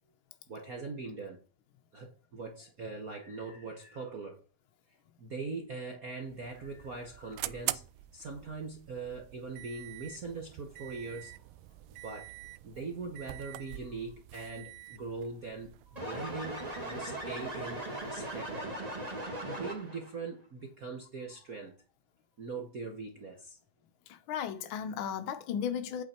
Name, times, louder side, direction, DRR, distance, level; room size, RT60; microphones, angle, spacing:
voice 1, 0.5-1.4 1.9-4.4 5.2-7.8 8.1-11.4 12.0-12.3 12.6-17.8 18.1-18.7 19.0-19.2 19.4-21.8 22.4-23.6, right 4 dB, 65° right, 0.8 m, -41 dB
sound 1, 6.2-18.6, right 17 dB, 85° right, 1.9 m, -45 dB
sound 2, 16.0-20.1, right 1 dB, 15° right, 1.6 m, -38 dB
voice 2, 24.1-26.0, left 8 dB, 90° left, 1.1 m, -35 dB
8.4 x 5.8 x 4.4 m
omnidirectional pair, 3.3 m